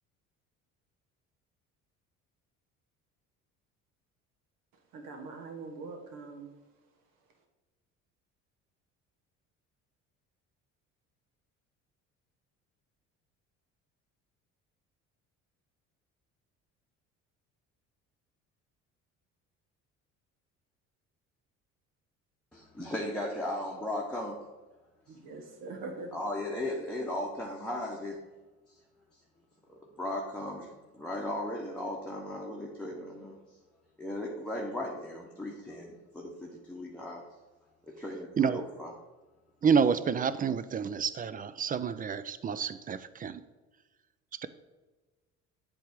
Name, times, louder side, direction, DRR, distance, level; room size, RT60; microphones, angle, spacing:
voice 1, 4.9-6.5 25.1-26.2, right 3 dB, 70° right, 4 dB, 1.4 m, -42 dB
voice 2, 22.5-24.4 26.1-28.2 29.7-30.7 30.9-33.4 34.0-37.2 38.0-38.9, left 1 dB, 5° left, -3 dB, 1.1 m, -36 dB
voice 3, 39.6-43.4, right 6 dB, 25° right, 14 dB, 0.3 m, -28 dB
7.6 x 3.4 x 5.1 m, 1.2 s
hypercardioid pair, 65°, 35 cm